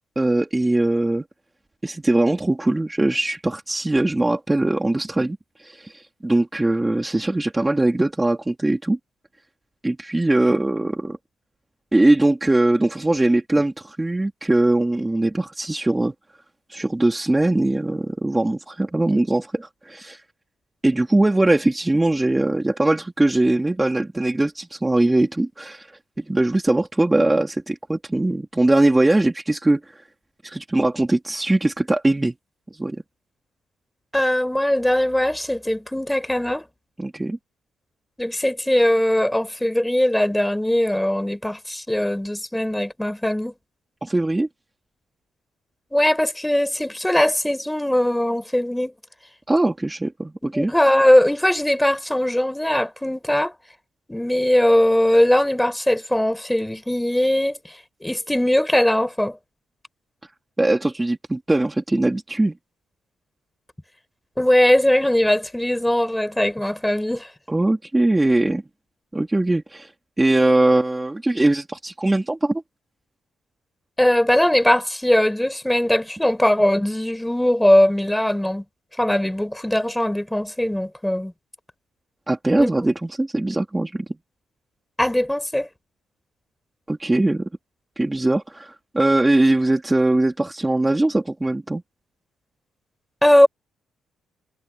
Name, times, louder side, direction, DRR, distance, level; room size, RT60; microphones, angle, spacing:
voice 1, 0.2-1.2 1.8-9.0 9.8-11.2 11.9-16.1 16.7-20.2 20.8-25.9 26.2-30.0 30.4-32.3 32.7-33.0 37.0-37.4 44.0-44.5 49.5-50.7 60.6-62.5 67.5-68.6 69.1-69.9 70.2-72.6 82.3-84.0 86.9-87.5 88.0-91.8, right 2 dB, 15° right, 3.0 m, -21 dB
voice 2, 34.1-36.7 38.2-43.5 45.9-48.9 50.4-53.5 54.1-57.6 58.0-59.4 64.4-67.3 74.0-78.6 79.0-81.3 82.6-82.7 85.0-85.7 93.2-93.5, left 1 dB, 5° left, 4.7 m, -20 dB
cardioid pair, 90°, 0 cm